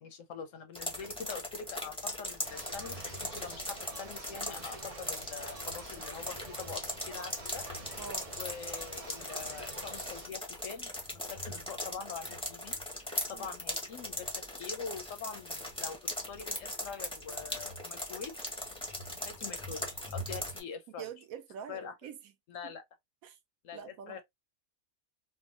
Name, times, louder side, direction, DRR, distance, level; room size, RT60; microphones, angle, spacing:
voice 1, 0.0-7.7 8.3-12.8 13.3-14.3 14.6-16.0 16.3-18.3 19.3-19.9 20.1-21.1 21.7-21.9 22.5-22.8 23.6-24.2, left 6 dB, 70° left, 0.8 m, -44 dB
sound 1, 0.8-20.6, left 1 dB, 5° left, 0.5 m, -39 dB
sound 2, 2.4-10.3, right 2 dB, 55° right, 0.4 m, -48 dB
voice 2, 8.0-8.3 13.3-13.5 20.9-22.2 22.6-22.7 23.2-23.4 23.7-24.2, right 7 dB, 70° right, 1.0 m, -45 dB
3.5 x 2.1 x 2.3 m
omnidirectional pair, 1.6 m